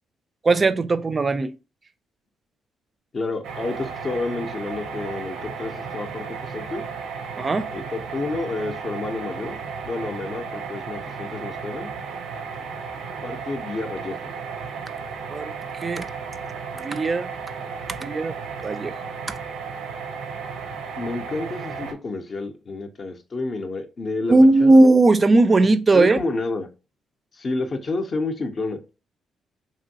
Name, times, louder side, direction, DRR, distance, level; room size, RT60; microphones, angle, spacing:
voice 1, 0.4-1.5 7.4-7.7 15.3-15.5 15.8-16.1 16.8-17.3 18.0-18.4 18.6-18.9 24.3-26.2, right 2 dB, 30° right, 0.3 m, -17 dB
voice 2, 3.1-6.8 7.7-9.6 9.9-11.9 13.2-14.3 21.0-24.3 24.6-24.8 25.9-26.7 27.3-28.8, left 3 dB, 40° left, 0.5 m, -30 dB
sound 1, 3.4-21.9, right 5 dB, 85° right, 0.5 m, -34 dB
3.0 x 2.6 x 2.7 m
cardioid pair, 90°, 0 cm